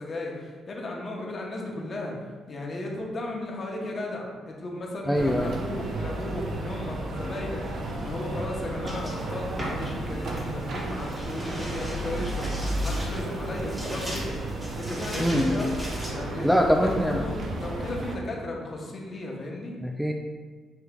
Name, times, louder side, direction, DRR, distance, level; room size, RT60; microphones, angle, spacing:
voice 1, 0.0-2.1 2.5-14.4 14.8-19.7, left 1 dB, 40° left, -1 dB, 1.0 m, -35 dB
voice 2, 5.1-5.6 15.2-15.6 16.4-17.2 19.8-20.1, equal, ahead, 0 dB, 0.3 m, -23 dB
sound 1, 5.1-18.2, right 1 dB, 65° right, 0.6 m, -33 dB
sound 2, 8.8-16.1, right 1 dB, 20° right, 1.3 m, -39 dB
6.7 x 3.1 x 2.3 m, 1.5 s
cardioid pair, 90°, 0 cm